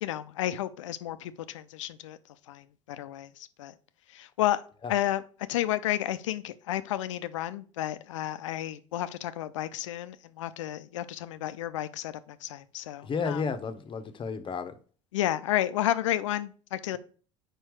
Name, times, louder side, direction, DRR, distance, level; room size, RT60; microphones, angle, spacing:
voice 1, 0.0-2.2 2.5-2.6 2.9-3.3 3.6-3.7 4.2-4.6 4.9-5.2 5.5-12.1 12.4-13.4 15.1-17.0, left 13 dB, 75° left, 0.5 m, -31 dB
voice 2, 13.0-14.8, left 5 dB, 30° left, 0.9 m, -32 dB
4.8 x 4.5 x 4.6 m
hypercardioid pair, 70°, 16 cm